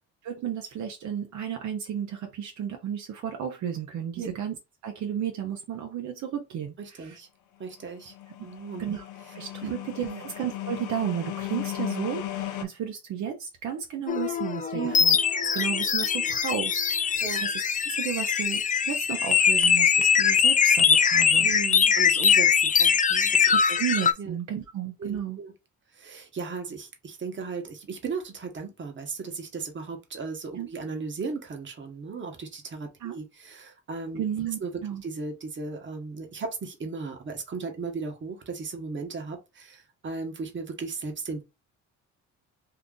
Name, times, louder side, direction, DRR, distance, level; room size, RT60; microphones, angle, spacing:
voice 1, 0.2-4.5 4.8-7.2 8.8-9.0 9.3-17.5 17.9-21.5 23.5-25.4 30.6-30.7 33.0-33.1 34.2-35.0, right 9 dB, 70° right, 0.8 m, -33 dB
voice 2, 6.8-7.3 7.6-8.1 8.4-8.8 9.6-9.7 10.0-10.2 14.7-15.0 17.2-17.4 21.4-23.8 24.2-24.4 25.0-25.5 25.9-34.2 34.6-41.4, right 4 dB, 40° right, 1.1 m, -36 dB
sound 1, 8.0-12.6, left 13 dB, 80° left, 0.6 m, -36 dB
sound 2, 14.1-24.1, left 7 dB, 25° left, 0.4 m, -22 dB
2.8 x 2.5 x 3.7 m
cardioid pair, 90°, 30 cm